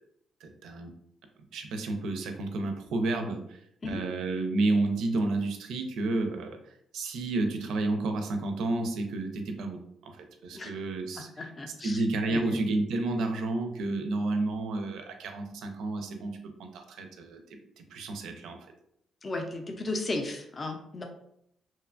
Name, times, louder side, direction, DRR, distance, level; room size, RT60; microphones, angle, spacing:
voice 1, 0.4-0.9 1.5-6.6 6.9-11.3 11.8-18.6, right 2 dB, 80° right, 5 dB, 0.4 m, -31 dB
voice 2, 11.2-12.0 12.3-12.6 19.2-21.1, left 2 dB, 30° left, 3 dB, 0.4 m, -35 dB
2.8 x 2.2 x 2.4 m, 0.74 s
cardioid pair, 90°, 0 cm